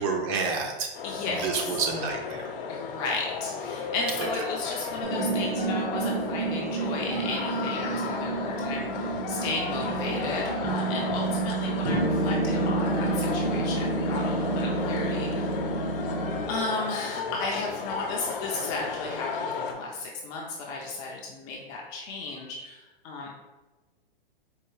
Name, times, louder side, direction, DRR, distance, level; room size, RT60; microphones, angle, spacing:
voice 1, 0.0-0.9 1.3-2.4, right 5 dB, 35° right, 3 dB, 0.5 m, -29 dB
sound 1, 0.9-19.7, left 5 dB, 60° left, 0.6 m, -34 dB
voice 2, 1.0-1.8 2.7-15.6 16.5-23.3, left 3 dB, 25° left, -2 dB, 0.3 m, -34 dB
sound 2, 5.0-16.4, right 2 dB, 65° right, 1.1 m, -29 dB
4.5 x 2.3 x 3.0 m, 1.1 s
hypercardioid pair, 135°, 30 cm